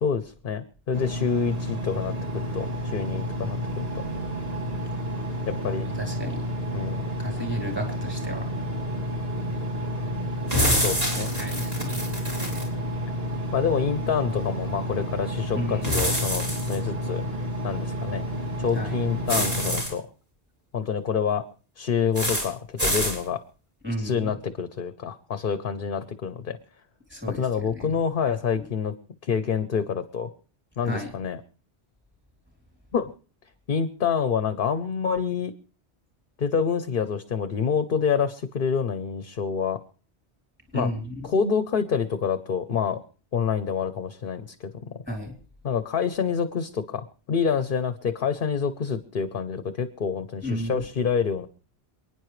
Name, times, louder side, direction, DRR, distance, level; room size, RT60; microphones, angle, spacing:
voice 1, 0.0-4.0 5.5-5.9 6.7-7.0 10.8-11.3 13.5-17.2 17.6-18.2 18.6-20.1 20.7-21.5 21.8-23.4 24.0-26.6 27.3-28.9 29.2-30.3 30.8-31.4 32.9-33.1 33.7-35.5 36.4-39.8 40.7-40.9 41.2-43.0 43.3-45.0 45.6-51.5, left 6 dB, 55° left, 12 dB, 0.9 m, -27 dB
Engine, 0.9-19.8, equal, 60° right, 2.7 m, -30 dB
voice 2, 5.9-6.4 7.2-8.5 11.4-12.0 15.5-15.9 18.7-19.0 23.8-24.3 27.1-28.0 30.8-31.1 40.7-41.3 45.1-45.3 50.4-50.8, equal, 10° right, 2 dB, 3.2 m, -33 dB
sound 1, 10.5-12.7 15.8-16.8 19.3-19.9 22.1-22.5 22.8-23.2, equal, 35° right, 4.0 m, -26 dB
28.0 x 9.8 x 3.2 m, 0.39 s
omnidirectional pair, 1.1 m